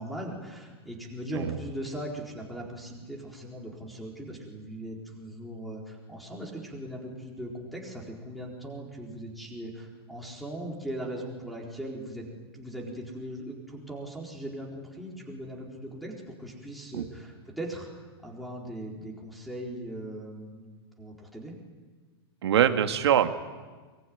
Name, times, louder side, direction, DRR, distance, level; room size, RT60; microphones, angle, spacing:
voice 1, 0.0-12.3 12.5-16.1 16.4-21.5, right 1 dB, ahead, -3 dB, 4.2 m, -39 dB
voice 2, 22.4-23.3, right 10 dB, 80° right, 7 dB, 2.1 m, -23 dB
23.5 x 22.5 x 9.6 m, 1.4 s
supercardioid pair, 155°, 14 cm